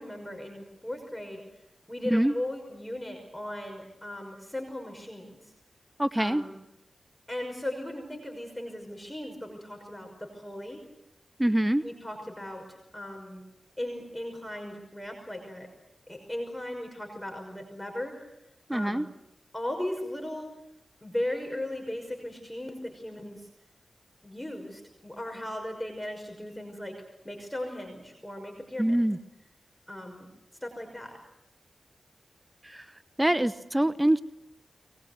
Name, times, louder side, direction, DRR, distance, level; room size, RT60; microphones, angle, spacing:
voice 1, 0.0-1.4 1.9-5.4 6.2-6.6 7.3-10.8 11.8-12.6 12.9-13.4 13.8-15.7 16.1-18.1 18.7-19.1 19.5-20.5 21.0-23.5 24.2-27.0 27.2-29.0 29.9-30.3 30.6-31.2, left 1 dB, 10° left, 3 dB, 5.8 m, -37 dB
voice 2, 6.0-6.4 11.4-11.8 18.7-19.0 28.8-29.2 32.6-32.8 33.2-34.2, right 1 dB, 15° right, 12 dB, 0.9 m, -24 dB
23.5 x 20.5 x 8.2 m, 0.87 s
cardioid pair, 50°, 0 cm